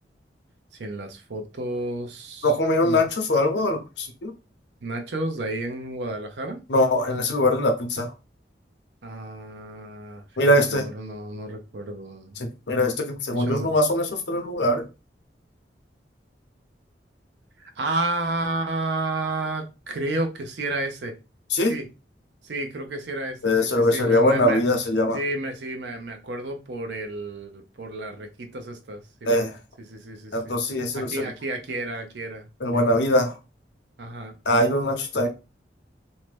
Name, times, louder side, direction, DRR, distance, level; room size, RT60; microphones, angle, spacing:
voice 1, 0.7-2.5 2.8-3.0 4.8-6.6 9.0-12.4 13.3-13.7 17.6-21.1 21.7-21.9 22.4-24.6 25.1-29.5 29.9-30.5 30.9-32.5 32.7-33.0 34.0-34.3, right 2 dB, 75° right, 0.6 m, -31 dB
voice 2, 2.4-4.3 6.7-8.1 10.4-10.9 12.4-14.9 21.5-21.8 23.4-25.2 29.3-29.6 30.3-31.3 32.6-33.4 34.5-35.3, left 1 dB, 75° left, 0.7 m, -22 dB
2.7 x 2.1 x 3.2 m
head